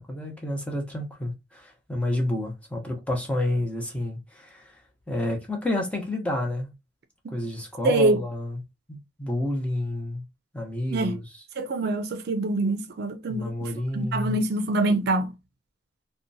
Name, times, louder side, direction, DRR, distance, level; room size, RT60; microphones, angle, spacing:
voice 1, 0.0-4.6 5.1-6.7 7.3-8.6 8.9-10.2 10.5-11.2 13.3-14.4, left 1 dB, 5° left, 0.7 m, -29 dB
voice 2, 7.8-8.2 10.9-11.2 11.6-15.3, right 2 dB, 60° right, 0.4 m, -25 dB
2.8 x 2.1 x 2.6 m
head